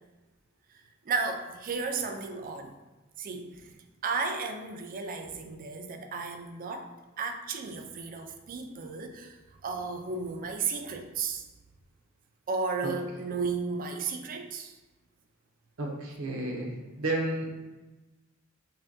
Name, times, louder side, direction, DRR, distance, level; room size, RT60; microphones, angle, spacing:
voice 1, 0.7-2.8 3.2-3.6 4.0-6.9 7.2-11.4 12.5-14.7, right 4 dB, 40° right, 6 dB, 0.4 m, -34 dB
voice 2, 15.8-16.7 17.0-17.5, right 2 dB, 85° right, -1 dB, 0.8 m, -31 dB
5.4 x 2.2 x 2.6 m, 1.1 s
head